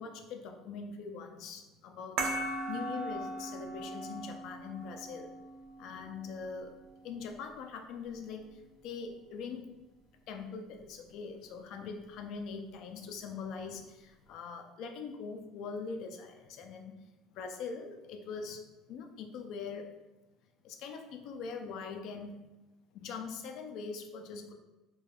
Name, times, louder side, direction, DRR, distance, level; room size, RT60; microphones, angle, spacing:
voice 1, 0.0-2.3 2.7-5.3 5.8-6.7 7.0-9.7 10.3-17.0 17.3-18.6 18.9-19.9 20.6-22.4 22.9-24.5, left 5 dB, 50° left, 5 dB, 0.3 m, -42 dB
sound 1, 2.2-7.3, right 2 dB, 50° right, 0.3 m, -39 dB
2.3 x 2.2 x 3.2 m, 1.1 s
cardioid pair, 165°, 0 cm